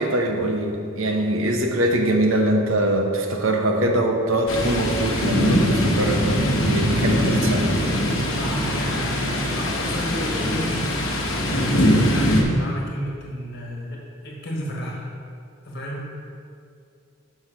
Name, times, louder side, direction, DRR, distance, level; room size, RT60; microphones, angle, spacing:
voice 1, 0.0-7.7, right 1 dB, 75° right, 2 dB, 0.8 m, -22 dB
Thunder, 4.5-12.4, equal, 75° left, 1.0 m, -22 dB
voice 2, 8.4-11.0 11.5-15.1 15.6-16.1, equal, 50° left, -2 dB, 1.3 m, -32 dB
6.3 x 5.8 x 5.0 m, 2.4 s
head